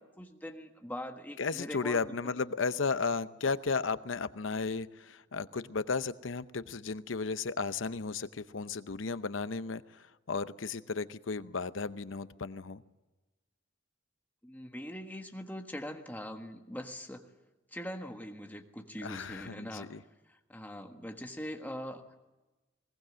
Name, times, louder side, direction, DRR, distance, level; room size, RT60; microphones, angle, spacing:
voice 1, 0.0-2.3 14.4-17.2 17.7-20.0 20.3-22.2, equal, 10° left, 4 dB, 1.5 m, -42 dB
voice 2, 1.4-9.8 10.3-12.8 19.0-20.0, left 4 dB, 90° left, 13 dB, 0.8 m, -34 dB
20.5 x 19.0 x 7.6 m, 1.1 s
head